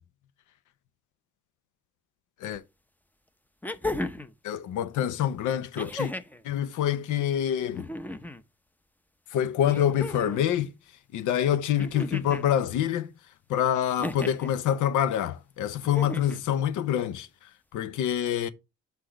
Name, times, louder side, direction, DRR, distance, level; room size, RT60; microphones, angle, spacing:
sound 1, 2.5-2.6 3.6-4.3 5.7-6.4 7.7-8.4 9.6-10.4 11.8-12.5 14.0-14.5 15.8-16.4 17.7-17.8, left 2 dB, 5° left, 0.5 m, -35 dB
voice 1, 4.4-6.1 6.4-7.9 9.3-10.7 11.1-13.1 13.5-18.5, left 10 dB, 80° left, 0.7 m, -26 dB
5.9 x 3.4 x 4.9 m
cardioid pair, 90°, 30 cm